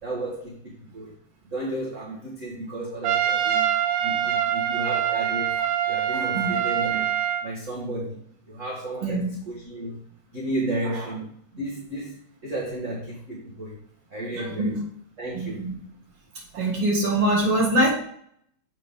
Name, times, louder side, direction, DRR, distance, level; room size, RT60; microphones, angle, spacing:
voice 1, 0.0-1.1 1.5-3.7 4.0-5.5 5.9-7.1 7.4-8.2 8.5-10.0 10.3-13.8 14.1-14.8 15.2-15.6, right 1 dB, 35° right, -5 dB, 1.4 m, -33 dB
Trumpet, 3.0-7.5, right 10 dB, 80° right, 1.3 m, -24 dB
voice 2, 6.1-6.6 9.0-9.3 10.8-11.0 14.4-14.8 15.3-15.7 16.5-17.9, right 1 dB, 55° right, -3 dB, 2.9 m, -24 dB
7.3 x 6.5 x 3.7 m, 0.65 s
omnidirectional pair, 3.4 m